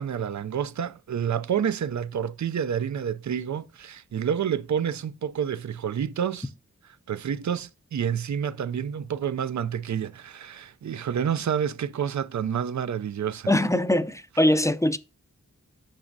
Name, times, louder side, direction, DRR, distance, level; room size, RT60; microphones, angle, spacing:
voice 1, 0.0-6.5 7.1-13.5, right 8 dB, 65° right, 0.5 m, -29 dB
voice 2, 13.5-15.0, left 1 dB, 10° left, 0.5 m, -22 dB
8.9 x 6.2 x 2.7 m
wide cardioid pair, 50°, 31 cm